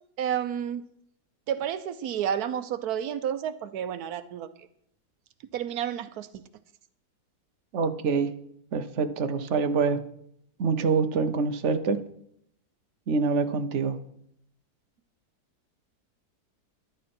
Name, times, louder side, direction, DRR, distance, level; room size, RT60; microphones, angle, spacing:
voice 1, 0.2-0.8 1.5-4.7 5.5-6.3, right 9 dB, 85° right, 11 dB, 1.2 m, -30 dB
voice 2, 7.7-8.3 8.7-10.0 10.6-12.0 13.1-14.0, right 5 dB, 55° right, 8 dB, 1.2 m, -25 dB
14.0 x 11.5 x 4.4 m, 0.70 s
omnidirectional pair, 1.6 m